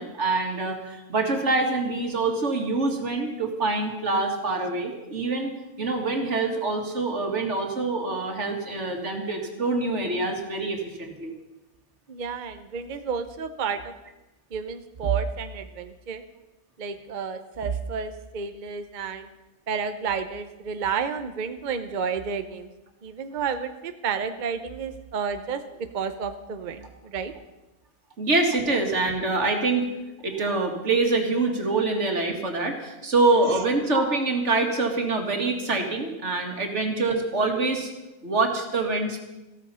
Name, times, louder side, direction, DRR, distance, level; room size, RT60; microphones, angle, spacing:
voice 1, 0.0-5.5 5.8-11.3 28.2-29.9 30.2-37.9 38.2-39.2, right 3 dB, 80° right, 3 dB, 2.3 m, -25 dB
voice 2, 12.1-13.9 14.5-16.2 16.8-19.3 19.7-22.7 23.0-25.6 25.9-27.3 33.5-33.6 36.7-36.8, right 6 dB, 45° right, 9 dB, 0.9 m, -31 dB
15.0 x 13.5 x 5.6 m, 1.0 s
omnidirectional pair, 1.2 m